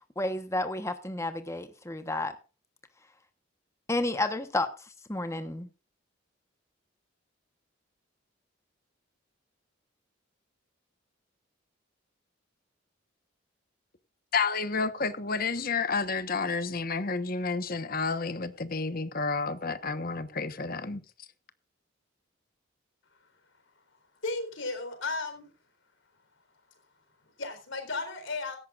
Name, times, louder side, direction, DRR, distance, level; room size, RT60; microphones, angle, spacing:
voice 1, 0.2-2.3 3.9-5.7, left 2 dB, 15° left, 1.0 m, -31 dB
voice 2, 14.3-21.0, left 4 dB, 45° left, 1.1 m, -30 dB
voice 3, 24.2-25.5 27.2-28.6, left 3 dB, 70° left, 4.0 m, -34 dB
16.5 x 14.0 x 2.5 m
head